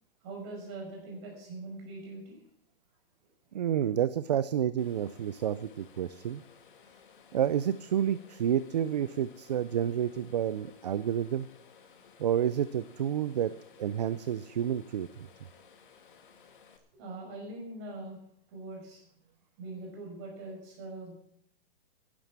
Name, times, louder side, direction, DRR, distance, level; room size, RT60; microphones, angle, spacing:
voice 1, 0.2-2.4 16.9-18.2 18.5-19.0 19.6-21.1, right 2 dB, 30° right, 0 dB, 5.6 m, -42 dB
voice 2, 3.5-6.4 7.3-11.5 12.2-13.5 13.8-15.1, right 10 dB, 45° right, 15 dB, 0.5 m, -29 dB
sound 1, 4.8-16.8, left 6 dB, 60° left, 2.0 m, -58 dB
11.0 x 11.0 x 7.3 m, 0.67 s
hypercardioid pair, 175°, 29 cm